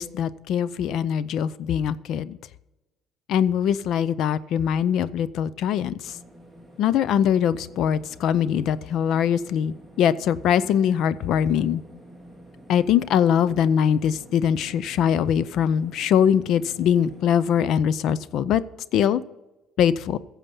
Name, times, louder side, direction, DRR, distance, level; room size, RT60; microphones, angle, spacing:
voice 1, 0.0-2.4 3.3-6.1 6.8-11.8 12.7-18.6 18.9-19.2 19.8-20.2, left 9 dB, 65° left, 18 dB, 0.5 m, -22 dB
sound 1, 6.0-17.7, equal, 10° left, 2.5 m, -48 dB
15.5 x 7.3 x 5.4 m, 1.0 s
cardioid pair, 105°, 0 cm